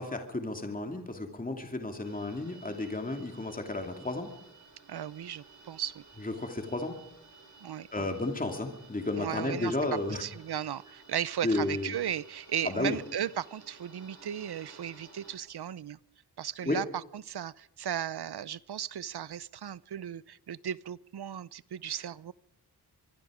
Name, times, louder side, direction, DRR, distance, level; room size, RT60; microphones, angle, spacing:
voice 1, 0.0-4.3 6.2-7.0 7.9-10.2 11.4-12.0 12.6-13.0 16.7-16.8 21.9-22.0, left 2 dB, 20° left, 4 dB, 2.7 m, -32 dB
sound 1, 2.0-15.4, right 4 dB, 40° right, 6.2 m, -55 dB
voice 2, 4.9-6.0 7.6-8.1 9.2-9.8 10.1-16.0 16.4-16.9 17.1-22.3, right 9 dB, 65° right, 20 dB, 0.7 m, -36 dB
24.0 x 24.0 x 5.0 m, 0.79 s
wide cardioid pair, 110°, 42 cm